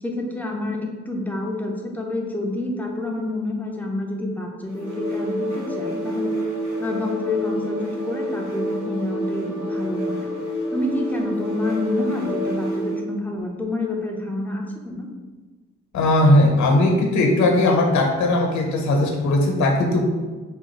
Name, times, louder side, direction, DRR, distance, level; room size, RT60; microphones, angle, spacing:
voice 1, 0.0-6.4 6.8-10.3 10.7-15.1, left 2 dB, 5° left, 0 dB, 0.4 m, -28 dB
sound 1, 4.7-13.1, equal, 85° right, 1.1 m, -28 dB
voice 2, 15.9-20.0, left 1 dB, 70° left, 2 dB, 0.8 m, -18 dB
3.5 x 2.3 x 4.4 m, 1.3 s
cardioid pair, 150°, 29 cm